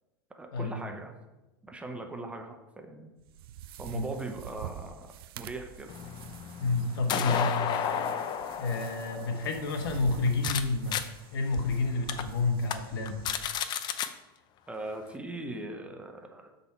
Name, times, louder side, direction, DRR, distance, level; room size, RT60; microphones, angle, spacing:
voice 1, 0.3-1.1 1.6-3.1 3.8-5.9 7.6-7.7 14.7-16.5, right 2 dB, 10° right, 4 dB, 0.7 m, -40 dB
sound 1, 3.2-13.5, right 9 dB, 75° right, 0.4 m, -46 dB
sound 2, 5.9-10.6 10.9-11.0 11.5-11.6 12.1-12.2 12.6-12.8 13.1-14.1, left 8 dB, 35° left, 0.5 m, -32 dB
voice 2, 6.6-8.0 8.6-11.0 11.3-13.2, left 3 dB, 75° left, 5 dB, 1.1 m, -29 dB
6.9 x 4.1 x 4.3 m, 1.0 s
hypercardioid pair, 110°, 12 cm